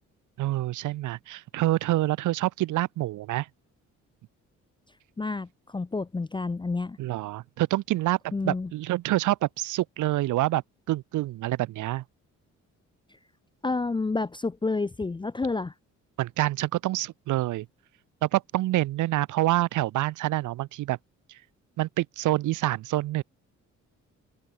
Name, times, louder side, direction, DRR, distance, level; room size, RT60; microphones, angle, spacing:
voice 1, 0.4-3.5 7.0-10.6 10.9-12.0 16.2-17.7 18.2-21.0 21.8-23.2, right 16 dB, 80° right, 0.9 m, -27 dB
voice 2, 5.2-7.0 8.3-8.7 13.6-15.7, left 3 dB, 15° left, 0.6 m, -29 dB
open air
cardioid pair, 90°, 30 cm